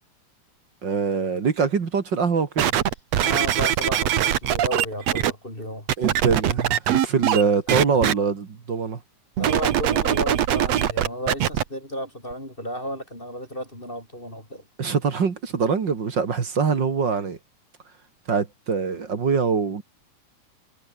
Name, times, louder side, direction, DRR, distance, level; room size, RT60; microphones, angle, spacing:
voice 1, 0.8-2.7 6.0-9.0 14.8-17.4 18.3-19.8, right 5 dB, 40° right, 2.3 m, -23 dB
sound 1, 2.6-5.3 5.9-7.4 7.7-8.1 9.4-11.6 12.3-12.4, right 10 dB, 60° right, 2.5 m, -22 dB
voice 2, 3.2-5.9 7.7-7.8 9.4-14.6, equal, 15° left, 5.8 m, -33 dB
omnidirectional pair, 3.5 m